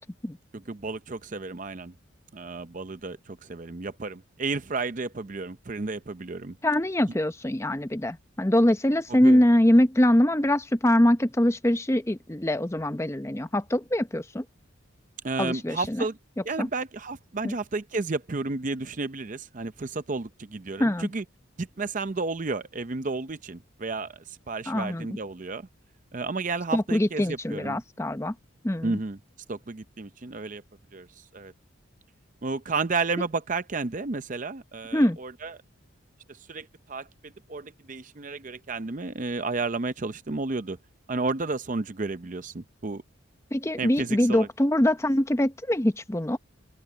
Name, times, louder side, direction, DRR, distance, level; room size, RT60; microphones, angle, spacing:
voice 1, 0.5-1.9 2.3-6.6 9.1-9.4 15.2-16.2 16.4-21.2 21.6-25.7 26.1-27.8 28.8-29.2 29.5-30.6 30.9-31.5 32.4-35.6 36.3-40.8 41.1-43.0 43.8-44.5, right 3 dB, 40° right, 0.6 m, -32 dB
voice 2, 6.6-14.4 15.4-16.0 16.6-16.7 17.4-17.5 20.8-21.1 24.7-25.1 26.7-28.3 28.6-29.0 34.9-35.2 43.5-46.4, left 1 dB, 15° left, 0.7 m, -23 dB
open air
head